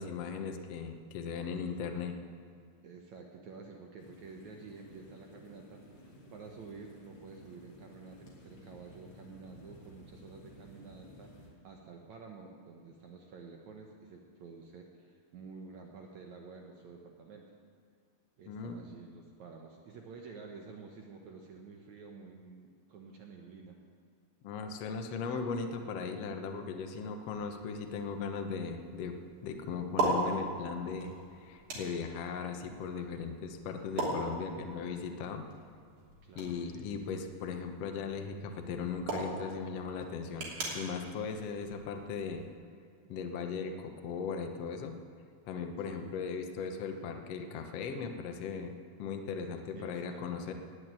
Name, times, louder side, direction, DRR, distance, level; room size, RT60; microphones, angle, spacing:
voice 1, 0.0-2.2 18.5-18.8 24.4-29.2 29.4-35.5 36.3-42.4 43.1-45.0 45.4-48.7 49.0-50.5, left 5 dB, 80° left, 5 dB, 1.4 m, -38 dB
voice 2, 2.8-17.5 18.4-23.8 36.2-36.8 45.8-46.2 49.8-50.3, right 4 dB, 70° right, 1 dB, 1.8 m, -50 dB
sound 1, 4.0-11.5, equal, 45° left, 3.7 m, -55 dB
sound 2, 27.3-42.5, right 2 dB, 50° right, 4.3 m, -40 dB
19.5 x 6.5 x 8.9 m, 2.3 s
omnidirectional pair, 4.6 m